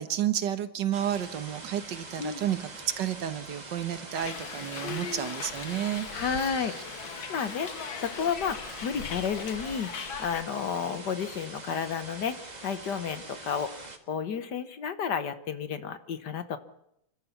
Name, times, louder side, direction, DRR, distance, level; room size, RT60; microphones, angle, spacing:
voice 1, 0.0-6.7, right 10 dB, 65° right, 12 dB, 1.7 m, -31 dB
sound 1, 0.9-14.0, right 2 dB, 20° right, 1.7 m, -44 dB
Hiss, 4.1-10.4, left 7 dB, 85° left, 2.2 m, -40 dB
voice 2, 4.8-5.3 6.1-6.8 7.1-12.4 12.6-16.6, left 7 dB, 60° left, 12 dB, 1.7 m, -32 dB
30.0 x 13.0 x 7.2 m, 0.79 s
omnidirectional pair, 2.1 m